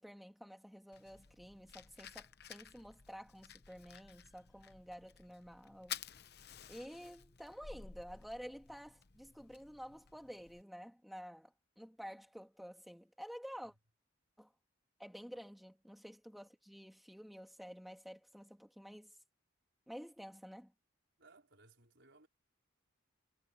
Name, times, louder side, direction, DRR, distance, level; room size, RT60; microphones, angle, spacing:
voice 1, 0.0-6.0 6.7-13.7 14.4-14.5 15.0-19.2 19.9-20.7, equal, ahead, 2.5 m, -51 dB
Fire, 0.9-10.6, left 9 dB, 50° left, 1.0 m, -53 dB
voice 2, 21.2-22.3, right 3 dB, 60° right, 5.3 m, -64 dB
head